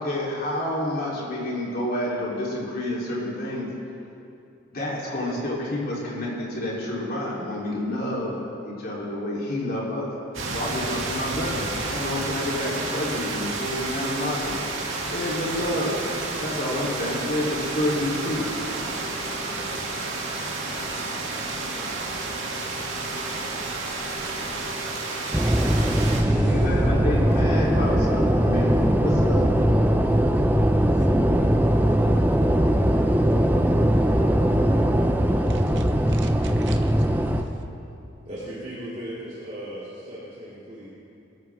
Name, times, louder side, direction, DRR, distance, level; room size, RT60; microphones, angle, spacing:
voice 1, 0.0-3.7 4.7-10.0 10.5-14.6 15.1-15.9 16.4-18.4 26.4-29.4, left 1 dB, 45° left, -5 dB, 3.5 m, -29 dB
sound 1, 10.3-26.2, right 3 dB, 75° right, 2.1 m, -30 dB
sound 2, 25.3-37.4, equal, 10° right, 0.6 m, -20 dB
voice 2, 26.2-26.5 35.5-35.8 36.1-36.9, right 4 dB, 60° right, 5 dB, 0.9 m, -43 dB
voice 3, 38.2-40.9, right 1 dB, 35° right, -10 dB, 2.9 m, -37 dB
22.5 x 13.0 x 3.6 m, 2.7 s
head